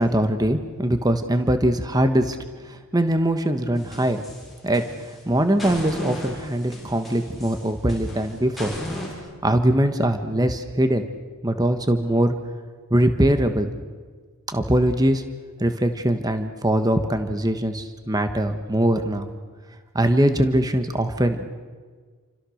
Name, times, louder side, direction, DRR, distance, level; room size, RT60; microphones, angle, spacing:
voice 1, 0.0-2.4 2.6-4.2 4.6-4.8 5.3-8.7 9.4-11.1 11.4-12.3 12.9-13.7 14.5-15.2 15.6-19.3 19.9-21.5, right 1 dB, 15° right, 8 dB, 1.3 m, -21 dB
sound 1, 3.7-5.2 5.6-9.1, equal, ahead, 7.7 m, -35 dB
29.0 x 25.5 x 6.5 m, 1.5 s
head